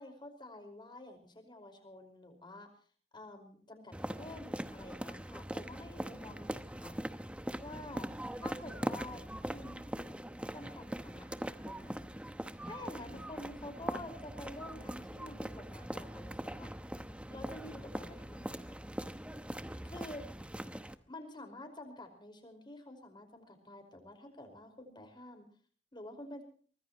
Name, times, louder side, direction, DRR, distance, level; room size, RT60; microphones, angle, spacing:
voice 1, 0.0-2.7 3.1-7.0 7.6-8.1 8.4-10.1 10.5-12.0 12.6-16.7 17.3-18.8 19.8-20.3 21.1-25.5 25.9-26.4, left 1 dB, 25° left, 6 dB, 5.1 m, -49 dB
sound 1, 3.9-20.9, equal, 5° right, 0.9 m, -41 dB
24.0 x 20.0 x 3.1 m, 0.43 s
head